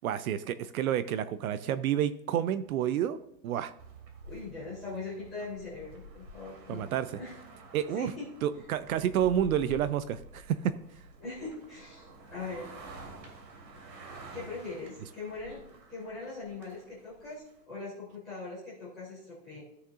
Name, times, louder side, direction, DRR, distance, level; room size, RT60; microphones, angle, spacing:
voice 1, 0.0-3.2 3.4-3.7 6.7-7.2 7.7-8.1 8.4-10.7, right 10 dB, 60° right, 13 dB, 0.6 m, -29 dB
sound 1, 3.8-17.6, right 2 dB, 85° right, 2.6 m, -49 dB
voice 2, 4.2-6.8 7.1-7.4 7.9-8.2 11.2-12.7 14.3-15.6 15.9-19.6, left 3 dB, 5° left, -19 dB, 0.3 m, -41 dB
14.0 x 6.5 x 2.5 m, 0.81 s
hypercardioid pair, 155°, 49 cm